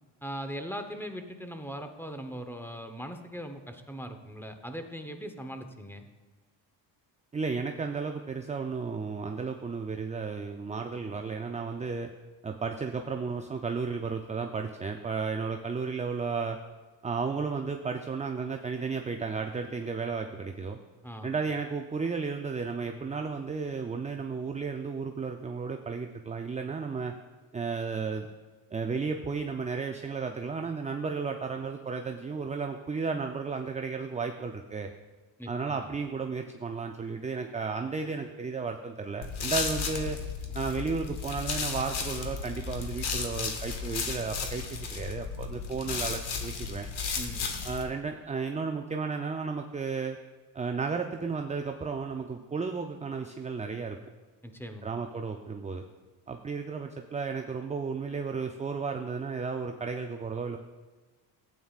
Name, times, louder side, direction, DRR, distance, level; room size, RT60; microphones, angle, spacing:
voice 1, 0.2-6.0 21.0-21.4 35.4-35.9 47.2-47.6 54.4-54.9, equal, 5° left, 6 dB, 0.9 m, -40 dB
voice 2, 7.3-12.1 12.4-16.6 17.0-20.8 21.2-27.1 27.5-28.3 28.7-34.9 35.5-40.2 40.5-46.9 47.6-50.2 50.5-54.0 54.8-55.8 56.3-60.6, right 5 dB, 15° right, 4 dB, 0.4 m, -33 dB
sound 1, 39.2-47.8, left 5 dB, 55° left, 1.4 m, -34 dB
12.5 x 8.8 x 2.4 m, 1.3 s
supercardioid pair, 70°, 48 cm